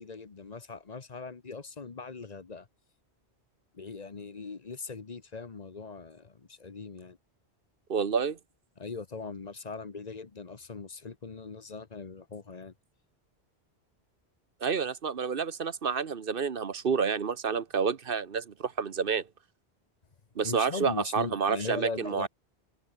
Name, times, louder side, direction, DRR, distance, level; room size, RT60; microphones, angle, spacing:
voice 1, 0.0-2.7 3.7-7.2 8.8-12.7 20.4-22.3, left 4 dB, 40° left, 1.1 m, -40 dB
voice 2, 7.9-8.4 14.6-19.2 20.4-22.3, right 6 dB, 55° right, 1.2 m, -29 dB
open air
omnidirectional pair, 1.1 m